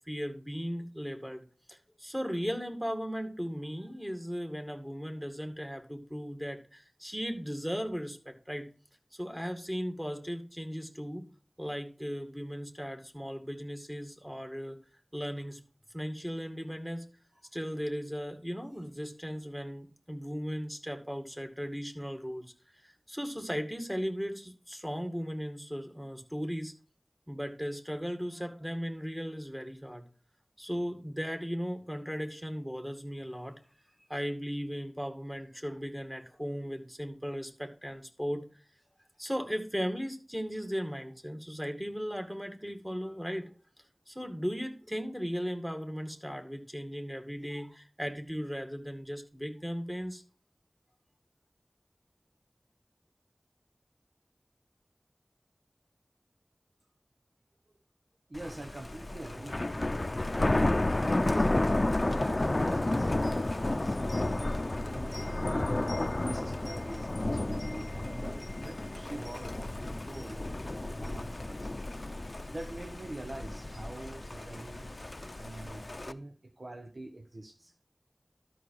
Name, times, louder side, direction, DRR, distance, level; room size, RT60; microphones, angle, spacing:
voice 1, 0.1-1.4 1.7-8.7 9.1-11.2 11.6-14.8 15.1-15.6 15.9-17.0 17.5-22.5 22.8-26.7 27.3-30.0 30.6-33.6 34.1-38.5 39.2-43.5 44.1-50.2, equal, 10° right, 6 dB, 2.2 m, -37 dB
Thunder, 58.3-76.1, left 2 dB, 60° left, 0.6 m, -32 dB
voice 2, 58.3-60.0 60.5-61.7 62.1-64.6 64.8-65.7 66.2-71.7 72.5-75.0 75.3-77.8, right 1 dB, 75° right, 5 dB, 1.1 m, -45 dB
12.5 x 6.0 x 4.7 m, 0.39 s
wide cardioid pair, 45°, 0 cm